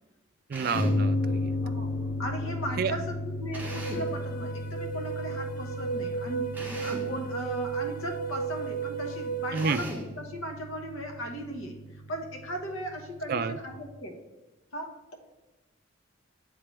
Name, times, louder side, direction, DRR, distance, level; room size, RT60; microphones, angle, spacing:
Drill, 0.5-1.1 3.5-4.2 6.5-7.2 9.5-10.2, equal, 10° right, 1.0 m, -39 dB
voice 1, 0.5-1.6 2.8-2.9 9.5-9.8 13.3-13.6, right 5 dB, 45° right, 12 dB, 0.3 m, -29 dB
sound 1, 0.7-13.7, left 1 dB, 65° left, 1.7 m, -35 dB
voice 2, 2.2-14.2 14.7-15.1, equal, 90° left, 3 dB, 1.1 m, -37 dB
sound 2, 3.6-9.6, right 5 dB, 45° left, 0.6 m, -34 dB
8.8 x 3.9 x 3.3 m, 1.2 s
head